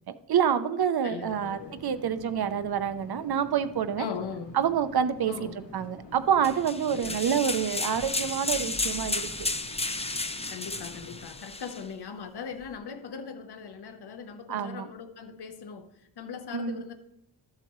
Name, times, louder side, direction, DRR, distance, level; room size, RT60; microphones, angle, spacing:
voice 1, 0.1-4.1 4.5-9.2 14.5-14.9 16.5-16.8, right 8 dB, 65° right, 11 dB, 0.7 m, -27 dB
voice 2, 1.0-1.8 4.0-4.6 5.3-5.5 6.9-7.3 10.5-15.9 16.2-16.9, left 6 dB, 70° left, 6 dB, 1.0 m, -39 dB
sound 1, 1.2-11.2, left 1 dB, 90° left, 2.2 m, -48 dB
sound 2, 6.4-11.8, left 3 dB, 15° left, 0.6 m, -33 dB
13.0 x 7.6 x 3.1 m, 0.79 s
wide cardioid pair, 90°, 40 cm